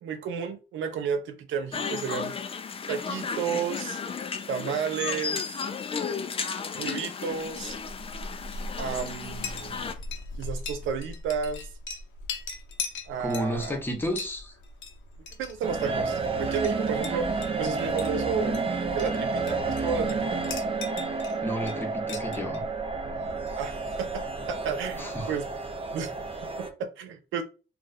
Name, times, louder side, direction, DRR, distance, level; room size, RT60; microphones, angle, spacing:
voice 1, 0.0-2.3 2.9-4.0 4.5-5.5 6.8-7.8 8.8-9.9 10.4-11.6 13.1-13.8 15.4-18.6 18.9-20.4 23.6-25.5 25.9-26.2 26.6-27.4, right 6 dB, 80° right, 0.6 m, -32 dB
sound 1, 1.7-9.9, left 6 dB, 30° left, 0.4 m, -34 dB
Chink clink, 7.4-25.2, left 3 dB, 75° left, 0.8 m, -41 dB
voice 2, 13.2-14.5 21.4-22.6 25.0-25.3, equal, 10° left, 0.9 m, -31 dB
sound 2, 15.6-26.7, right 4 dB, 30° right, 0.7 m, -30 dB
2.4 x 2.4 x 4.1 m
cardioid pair, 90°, 20 cm